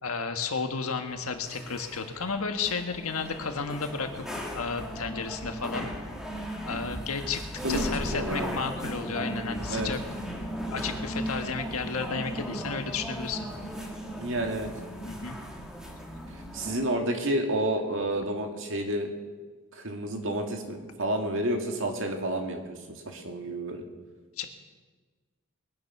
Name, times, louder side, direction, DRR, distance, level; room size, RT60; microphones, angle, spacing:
voice 1, 0.0-4.2 4.5-5.9 6.6-7.4 7.7-10.0 10.7-13.5 15.0-15.4 24.4-24.5, left 4 dB, 80° left, 6 dB, 1.5 m, -32 dB
sound 1, 1.0-16.8, equal, 5° right, 2.0 m, -37 dB
voice 2, 7.6-8.6 9.7-9.9 14.2-14.7 16.5-19.1 19.7-23.8, right 1 dB, 60° right, 3 dB, 2.1 m, -30 dB
21.5 x 10.0 x 6.0 m, 1.4 s
head